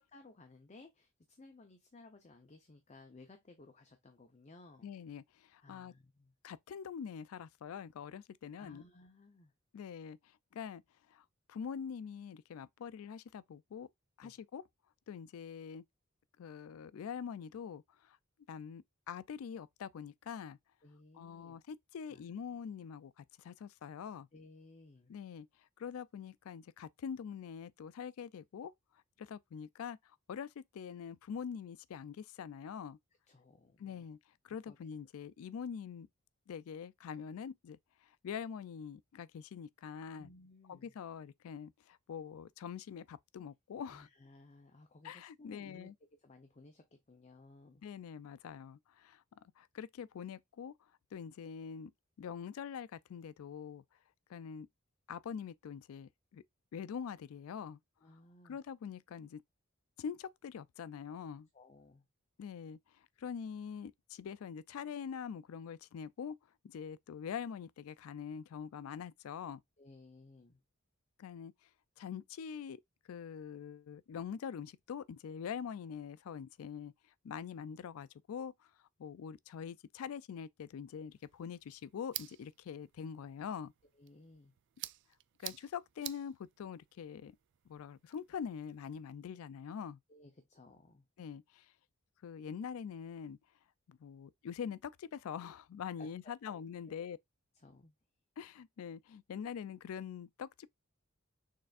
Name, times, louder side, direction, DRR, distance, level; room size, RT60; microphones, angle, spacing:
voice 1, 0.0-4.9 5.6-6.3 8.6-9.5 14.2-14.4 20.8-21.6 22.1-22.2 24.3-25.1 33.3-34.1 34.7-34.8 40.2-40.9 43.9-45.9 46.2-47.8 58.0-58.6 61.5-62.1 69.8-70.6 84.0-84.5 90.1-91.0 96.0-96.1 96.4-97.2 97.5-97.9, left 2 dB, 35° left, 0.7 m, -58 dB
voice 2, 4.8-5.9 6.4-8.8 9.7-10.8 11.1-13.9 14.2-14.6 15.1-15.8 16.4-18.2 18.5-20.6 21.1-24.3 25.1-25.5 25.8-28.7 29.2-33.0 33.8-34.2 34.4-36.1 36.5-40.3 40.7-44.1 45.0-45.9 47.8-49.2 49.6-50.7 51.1-51.9 52.2-53.8 54.3-54.7 55.1-56.4 56.7-57.8 58.4-59.4 60.0-61.5 62.4-66.4 66.6-69.6 71.2-71.5 72.0-72.8 73.1-76.9 77.2-78.7 79.0-83.7 85.4-87.4 87.7-90.0 91.2-91.7 92.2-93.4 93.9-97.2 98.4-100.7, left 7 dB, 80° left, 0.3 m, -44 dB
sound 1, 81.1-89.0, right 16 dB, 60° right, 0.3 m, -51 dB
6.5 x 3.3 x 2.4 m
head